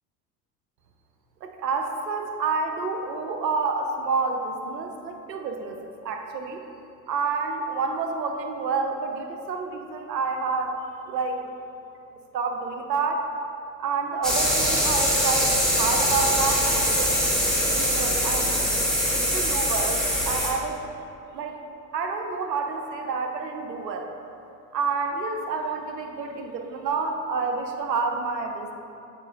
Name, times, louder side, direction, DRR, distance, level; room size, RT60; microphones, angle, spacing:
voice 1, 1.4-6.6 7.1-11.5 12.3-13.3 13.8-17.2 17.7-18.6 19.1-20.8 21.3-21.6 21.9-24.1 24.7-28.7, right 4 dB, 80° right, 4 dB, 0.7 m, -29 dB
sound 1, 14.2-20.5, equal, ahead, 1.4 m, -23 dB
8.1 x 5.1 x 2.5 m, 2.7 s
figure-of-eight pair, 65°, 49 cm